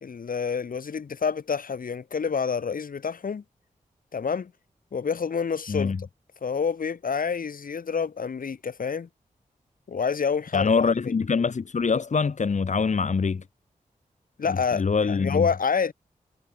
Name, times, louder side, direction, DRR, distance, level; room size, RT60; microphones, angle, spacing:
voice 1, 0.0-3.4 4.1-4.5 4.9-5.9 6.4-9.1 9.9-11.1 14.4-15.9, left 6 dB, 80° left, 2.5 m, -28 dB
voice 2, 5.7-6.0 10.5-13.4 14.5-15.5, left 5 dB, 55° left, 1.4 m, -24 dB
wide cardioid pair, 80°, 14 cm